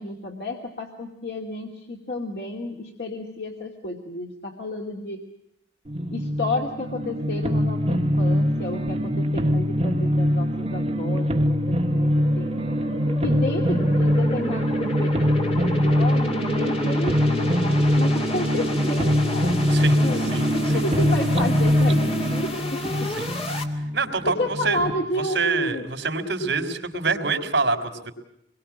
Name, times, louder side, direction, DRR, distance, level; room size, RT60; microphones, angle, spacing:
voice 1, 0.0-5.2 6.1-12.5 13.2-19.6 20.0-20.2 20.5-23.1 24.3-25.9, left 1 dB, 60° left, 1 dB, 2.6 m, -31 dB
sound 1, 5.9-25.0, equal, 35° right, 1.5 m, -23 dB
sound 2, 8.9-23.6, left 1 dB, 30° left, 2.4 m, -32 dB
voice 2, 19.7-20.0 20.3-20.8 23.2-23.3 23.9-24.8 25.2-28.1, right 4 dB, 75° right, 4 dB, 3.9 m, -26 dB
26.5 x 22.0 x 7.4 m, 0.79 s
head